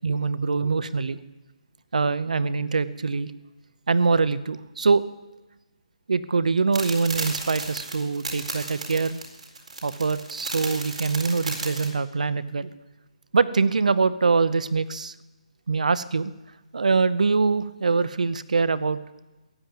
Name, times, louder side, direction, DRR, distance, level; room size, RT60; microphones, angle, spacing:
voice 1, 0.0-1.2 1.9-3.3 3.9-5.0 6.1-9.2 9.8-12.7 13.3-15.1 15.7-16.3 16.7-19.0, right 4 dB, 90° right, 16 dB, 0.8 m, -23 dB
sound 1, 6.7-11.9, right 3 dB, 70° right, 4.3 m, -33 dB
15.0 x 9.4 x 8.7 m, 1.1 s
hypercardioid pair, 175°, 4 cm